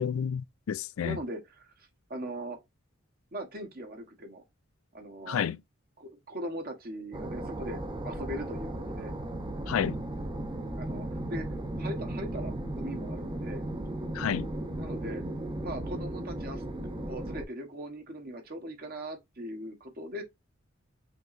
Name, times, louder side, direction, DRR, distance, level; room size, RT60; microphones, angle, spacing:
voice 1, 0.0-1.2 5.3-5.6 9.7-10.0 14.1-14.5, left 8 dB, 85° left, 0.4 m, -30 dB
voice 2, 1.0-2.6 3.3-4.4 4.9-5.5 6.0-9.1 10.8-11.5 11.8-13.6 14.8-15.2 15.6-20.2, right 1 dB, 45° right, 1.1 m, -40 dB
sound 1, 7.1-17.5, right 1 dB, 25° right, 0.7 m, -36 dB
5.7 x 2.9 x 2.5 m
head